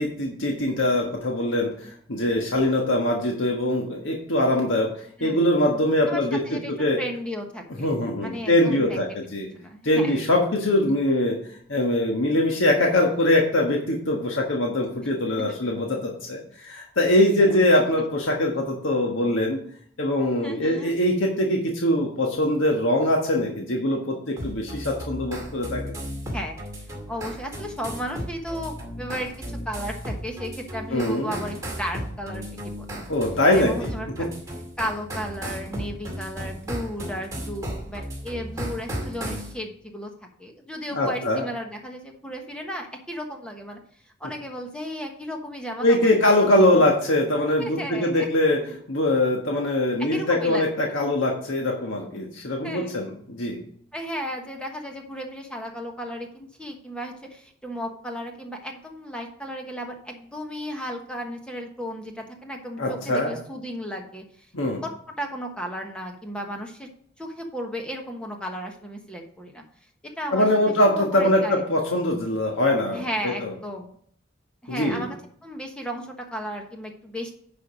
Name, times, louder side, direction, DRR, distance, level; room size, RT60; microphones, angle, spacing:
voice 1, 0.0-1.7 2.1-4.9 5.2-7.0 7.8-9.5 9.8-11.3 11.7-19.6 20.0-25.8 30.9-31.4 33.1-33.9 40.9-41.4 45.8-48.6 48.9-53.6 62.8-63.3 64.5-64.8 70.3-73.5 74.7-75.0, left 1 dB, 90° left, 0 dB, 1.5 m, -22 dB
voice 2, 6.1-6.7 7.0-7.9 8.2-9.0 9.5-10.2 17.4-17.5 20.4-20.9 26.3-33.1 33.5-34.3 34.8-40.1 40.4-43.8 44.2-46.2 46.7-46.9 47.6-48.3 48.6-48.7 50.0-50.7 52.6-52.9 53.9-64.5 64.8-66.9 67.2-69.6 70.2-70.5 70.9-71.6 72.9-73.9 74.6-75.2 75.4-77.3, equal, 5° left, 2 dB, 1.2 m, -34 dB
sound 1, 24.4-39.5, equal, 15° right, 2.1 m, -35 dB
10.0 x 5.2 x 5.0 m, 0.62 s
head